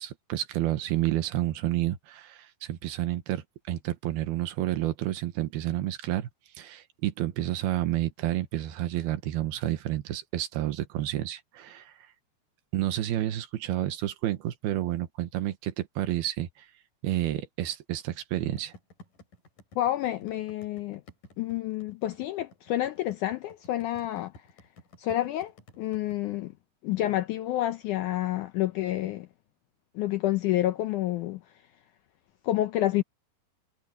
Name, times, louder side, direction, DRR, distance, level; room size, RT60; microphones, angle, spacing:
voice 1, 0.0-6.3 6.6-11.9 12.7-16.5 17.0-18.7, right 13 dB, 80° right, 3.2 m, -30 dB
sound 1, 18.6-26.2, left 2 dB, 55° left, 7.1 m, -52 dB
voice 2, 19.8-21.0 21.4-24.4 25.0-26.5 26.8-29.3 30.0-31.4 32.4-33.0, left 14 dB, 85° left, 1.8 m, -29 dB
omnidirectional pair, 4.5 m